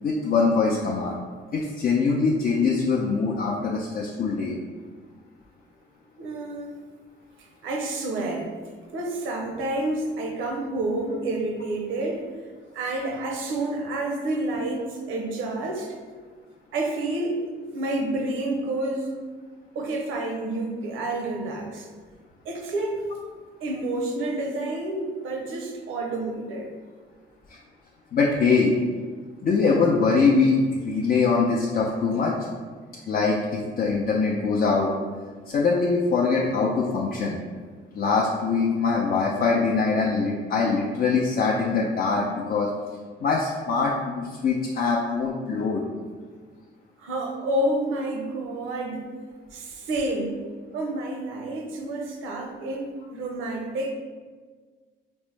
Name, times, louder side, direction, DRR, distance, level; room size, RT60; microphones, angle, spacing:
voice 1, 0.0-1.2 1.5-4.6 27.5-27.6 28.1-28.7 29.4-32.3 33.1-34.9 35.5-37.4 38.0-42.7 43.2-45.8, left 4 dB, 50° left, -3 dB, 0.5 m, -23 dB
voice 2, 6.2-6.8 7.4-8.5 8.9-12.3 12.7-16.0 16.7-19.3 19.7-21.9 22.4-23.1 23.6-26.7 47.0-49.1 49.5-50.4 50.7-53.9, right 2 dB, 90° right, 1 dB, 0.6 m, -29 dB
4.3 x 2.0 x 3.2 m, 1.5 s
cardioid pair, 90°, 20 cm